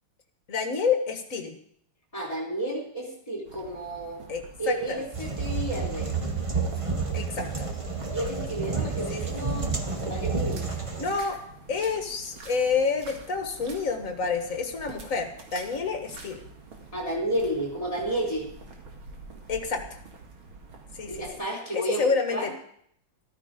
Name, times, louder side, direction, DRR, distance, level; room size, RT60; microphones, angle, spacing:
voice 1, 0.5-1.6 4.3-5.0 7.1-7.7 9.1-9.2 11.0-11.4 11.7-16.4 19.5-20.0 21.0-21.2 21.7-22.5, left 5 dB, 40° left, 5 dB, 1.9 m, -28 dB
voice 2, 2.1-4.2 4.6-6.1 8.1-9.7 10.1-10.6 16.9-18.5 21.1-22.5, right 1 dB, 15° left, -1 dB, 3.9 m, -31 dB
sound 1, 3.5-21.3, right 4 dB, 85° right, 2.9 m, -47 dB
sound 2, 5.1-11.1, right 4 dB, 20° right, 1.0 m, -30 dB
13.5 x 13.5 x 5.1 m, 0.65 s
omnidirectional pair, 2.2 m